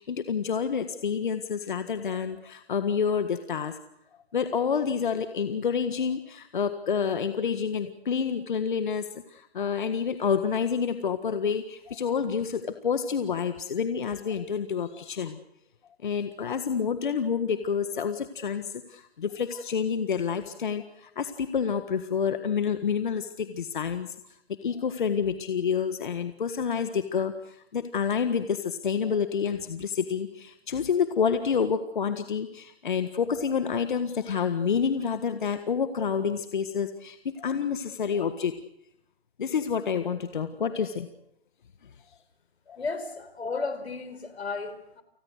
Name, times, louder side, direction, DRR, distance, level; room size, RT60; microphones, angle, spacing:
voice 1, 0.0-3.8 4.3-15.4 16.0-24.1 24.5-38.6 39.4-41.1 42.7-42.8, left 6 dB, 50° left, 9 dB, 1.6 m, -28 dB
voice 2, 42.8-45.0, left 4 dB, 85° left, 12 dB, 4.5 m, -34 dB
30.0 x 20.0 x 6.5 m, 0.75 s
hypercardioid pair, 170°, 31 cm